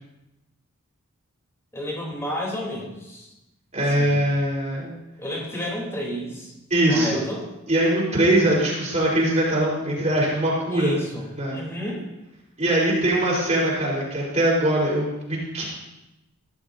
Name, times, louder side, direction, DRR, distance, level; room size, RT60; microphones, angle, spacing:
voice 1, 1.7-3.3 3.9-4.2 5.2-6.5 6.9-7.5 10.7-11.2 11.5-12.1, left 1 dB, 15° left, -3 dB, 3.4 m, -31 dB
voice 2, 3.7-4.9 6.7-7.2 7.7-10.9 11.3-11.6 12.6-15.6, right 1 dB, 35° right, -5 dB, 4.3 m, -22 dB
17.0 x 12.0 x 2.7 m, 0.97 s
head